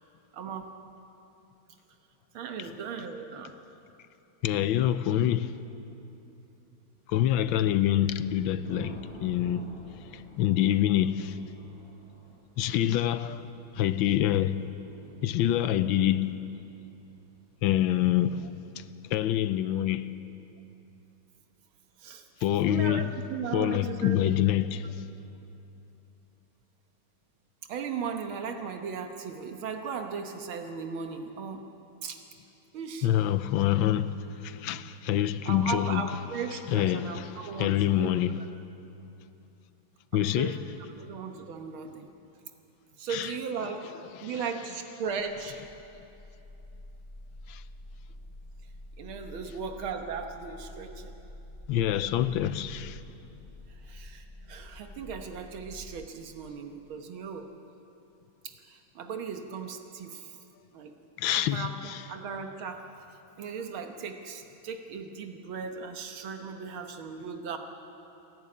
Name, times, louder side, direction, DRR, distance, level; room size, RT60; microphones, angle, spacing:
voice 1, 0.3-0.7 2.3-3.5 22.0-22.3 22.7-24.2 27.7-31.7 32.0-32.2 32.7-33.1 35.5-38.1 38.4-38.5 40.1-40.6 41.0-42.1 43.0-43.9 44.2-45.6 49.0-51.1 53.8-57.5 58.4-60.4 60.7-60.9 61.4-62.8 63.4-67.6, right 6 dB, 85° right, 2.0 m, -37 dB
voice 2, 4.4-5.5 7.1-9.7 10.1-11.4 12.6-13.4 13.7-14.7 15.2-16.3 17.6-18.5 18.8-18.9 19.1-20.1 22.4-23.1 23.5-24.9 33.0-36.0 36.7-38.4 40.1-40.6 43.1-43.3 44.2-44.4 47.5-47.6 51.7-53.0 61.2-62.0, left 12 dB, 80° left, 1.4 m, -26 dB
Thunder, 7.3-18.9, right 1 dB, 55° right, 7.1 m, -50 dB
sound 1, 45.1-56.1, left 1 dB, 50° left, 0.5 m, -48 dB
28.5 x 11.0 x 8.5 m
omnidirectional pair, 2.2 m